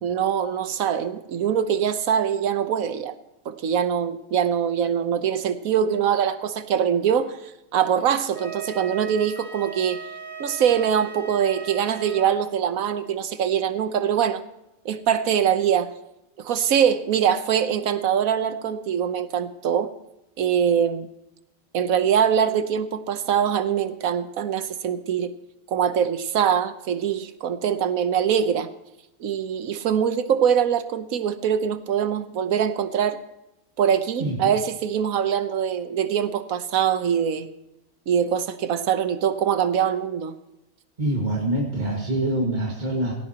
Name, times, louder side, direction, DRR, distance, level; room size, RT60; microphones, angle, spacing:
voice 1, 0.0-3.1 3.4-7.4 7.7-10.0 10.4-14.4 14.8-15.9 16.4-19.9 20.4-21.1 21.7-25.3 25.7-28.7 29.2-33.2 33.8-37.5 38.1-40.3, right 8 dB, 80° right, 11 dB, 1.4 m, -23 dB
Wind instrument woodwind instrument, 8.3-12.3, right 5 dB, 60° right, 2.7 m, -38 dB
voice 2, 34.2-34.5 41.0-43.1, right 1 dB, 35° right, -2 dB, 2.2 m, -25 dB
18.0 x 16.0 x 2.9 m, 0.90 s
omnidirectional pair, 1.4 m